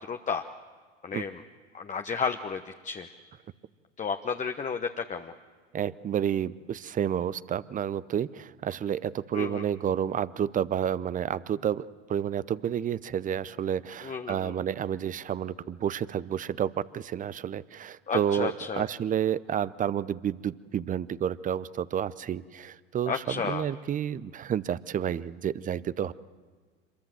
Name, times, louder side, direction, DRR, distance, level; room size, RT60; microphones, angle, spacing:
voice 1, 0.1-0.5 1.0-1.4 1.7-3.1 4.0-5.3 9.3-9.7 14.0-14.5 18.1-18.8 23.1-23.6, left 5 dB, 20° left, 5 dB, 1.1 m, -32 dB
voice 2, 5.7-26.1, right 9 dB, 20° right, 18 dB, 0.7 m, -30 dB
26.5 x 22.0 x 7.6 m, 1.5 s
figure-of-eight pair, 85°, 38 cm